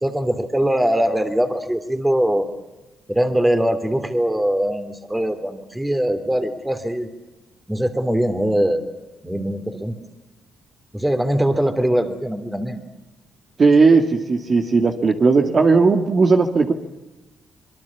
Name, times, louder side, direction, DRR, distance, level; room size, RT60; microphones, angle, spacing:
voice 1, 0.0-2.5 3.1-7.1 7.7-8.8 9.2-10.0 10.9-12.8, right 1 dB, 5° right, 8 dB, 3.0 m, -21 dB
voice 2, 13.6-16.7, right 4 dB, 40° right, 4 dB, 2.1 m, -16 dB
25.0 x 22.5 x 7.2 m, 1.0 s
cardioid pair, 90°, 0 cm